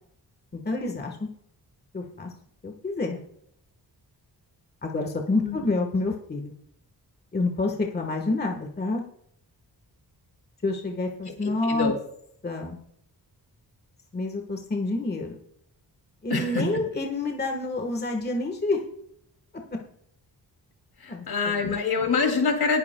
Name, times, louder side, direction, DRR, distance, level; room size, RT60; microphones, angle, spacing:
voice 1, 0.6-1.2 1.9-2.3 2.6-3.2 4.8-6.5 7.3-9.0 10.6-11.9 12.4-12.8 14.1-15.4 16.2-18.8 21.1-21.8, left 2 dB, 25° left, 3 dB, 1.4 m, -28 dB
voice 2, 11.3-12.0 16.3-16.7 21.0-22.8, left 4 dB, 65° left, 4 dB, 2.7 m, -26 dB
19.0 x 9.9 x 2.3 m, 0.69 s
wide cardioid pair, 155°, 39 cm